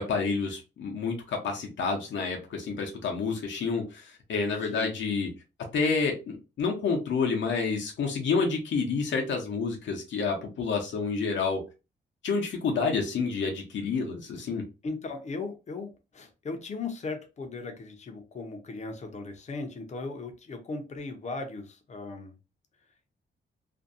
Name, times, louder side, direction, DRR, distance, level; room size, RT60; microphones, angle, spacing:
voice 1, 0.0-4.0 4.3-5.3 5.7-11.6 12.2-14.6, left 4 dB, 75° left, 1 dB, 0.7 m, -29 dB
voice 2, 4.6-5.0 14.8-22.4, left 3 dB, 35° left, 5 dB, 0.6 m, -37 dB
2.5 x 2.2 x 2.5 m, 0.29 s
wide cardioid pair, 135°, 19 cm